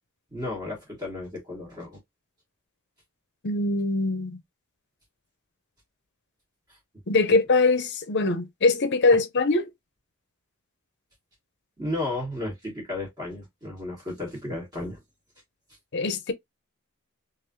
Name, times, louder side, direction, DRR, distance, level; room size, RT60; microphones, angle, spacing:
voice 1, 0.3-2.0 9.1-9.2 11.8-15.0, left 2 dB, 20° right, 1.3 m, -33 dB
voice 2, 3.4-4.4 7.1-9.7 15.9-16.3, left 3 dB, 55° left, 0.7 m, -22 dB
3.2 x 2.6 x 2.7 m
head